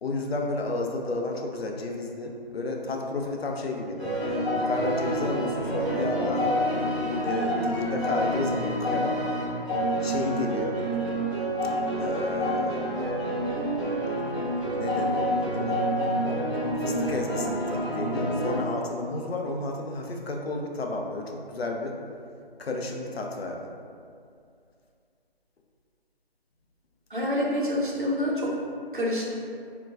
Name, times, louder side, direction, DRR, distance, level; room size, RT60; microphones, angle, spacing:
voice 1, 0.0-4.1 4.5-6.5 7.2-9.2 10.0-10.8 12.0-12.8 14.8-15.8 16.8-22.0 22.6-23.7, left 2 dB, 75° left, 1 dB, 0.5 m, -32 dB
sound 1, 4.0-18.6, equal, 30° left, 1.0 m, -28 dB
voice 2, 27.1-28.5 28.9-29.2, left 1 dB, 55° right, -4 dB, 0.6 m, -27 dB
4.0 x 2.2 x 2.3 m, 2.3 s
figure-of-eight pair, 175°, 31 cm